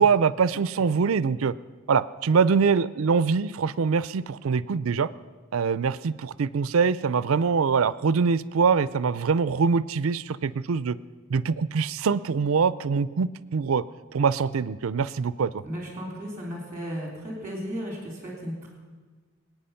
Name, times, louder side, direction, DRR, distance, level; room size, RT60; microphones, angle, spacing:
voice 1, 0.0-1.5 1.9-5.1 5.5-11.0 11.3-13.8 14.1-15.6, right 5 dB, 85° right, 17 dB, 0.5 m, -23 dB
voice 2, 15.6-18.7, equal, 15° right, -1 dB, 3.4 m, -35 dB
25.5 x 9.0 x 5.7 m, 1.4 s
head